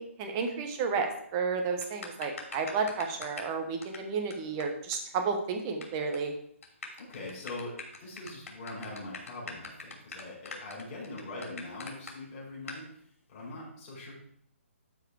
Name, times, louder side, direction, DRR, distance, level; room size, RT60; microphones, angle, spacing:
voice 1, 0.0-6.3, right 5 dB, 20° right, 5 dB, 1.0 m, -32 dB
sound 1, 1.8-3.5 3.8-4.0 4.3-4.4 4.6-4.7 4.9-5.0 5.2-5.8 6.1-6.3 6.6-12.1 12.7-12.8, left 4 dB, 80° left, 3.1 m, -42 dB
voice 2, 7.0-7.7 8.0-12.8 13.3-14.1, left 2 dB, 25° left, -6 dB, 4.3 m, -42 dB
12.0 x 4.7 x 4.7 m, 0.66 s
hypercardioid pair, 170°, 7 cm